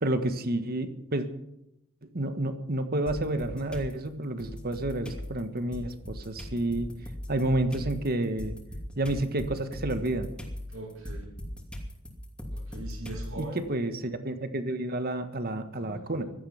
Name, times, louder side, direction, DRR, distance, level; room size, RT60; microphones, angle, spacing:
voice 1, 0.0-1.3 2.1-6.9 7.3-8.6 8.9-10.3 13.4-16.2, right 1 dB, 45° right, 9 dB, 1.5 m, -30 dB
sound 1, 3.1-3.9 4.4-13.6, left 1 dB, 5° left, 2.7 m, -39 dB
voice 2, 10.7-11.3 12.5-13.6 15.7-16.3, right 2 dB, 65° right, -2 dB, 5.9 m, -41 dB
16.0 x 13.0 x 5.8 m, 0.85 s
head